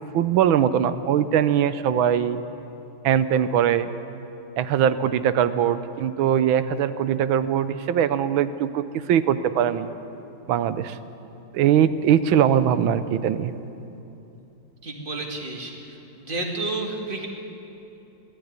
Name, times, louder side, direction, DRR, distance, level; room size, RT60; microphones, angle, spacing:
voice 1, 0.1-2.4 3.0-3.9 4.6-8.8 9.1-9.9 10.5-11.0 11.5-13.5, right 9 dB, 75° right, 13 dB, 1.5 m, -21 dB
voice 2, 14.8-17.3, right 2 dB, 25° right, 1 dB, 2.3 m, -31 dB
20.0 x 13.5 x 9.7 m, 2.9 s
omnidirectional pair, 2.3 m